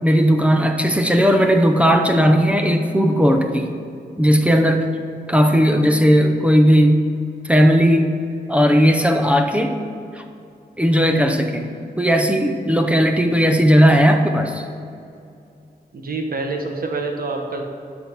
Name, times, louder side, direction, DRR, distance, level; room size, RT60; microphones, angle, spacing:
voice 1, 0.0-3.7 4.2-4.9 5.3-7.0 7.4-8.1 8.5-9.8 10.1-10.2 10.8-11.7 12.0-14.6, equal, 5° right, 4 dB, 0.7 m, -16 dB
voice 2, 15.9-17.6, right 3 dB, 60° right, 3 dB, 1.2 m, -26 dB
12.0 x 4.3 x 5.9 m, 2.5 s
wide cardioid pair, 110°, 17 cm